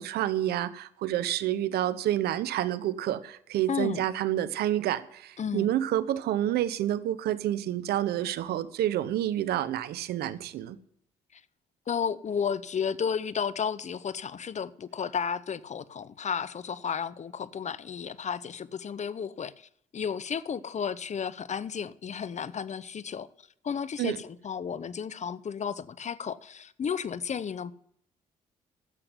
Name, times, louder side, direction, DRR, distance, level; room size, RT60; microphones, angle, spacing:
voice 1, 0.0-10.8 24.0-24.2, right 12 dB, 75° right, 0.8 m, -29 dB
voice 2, 3.7-4.0 5.4-5.7 11.9-23.3 23.6-27.7, left 7 dB, 45° left, 0.7 m, -33 dB
12.0 x 7.9 x 7.9 m
supercardioid pair, 55°, 17 cm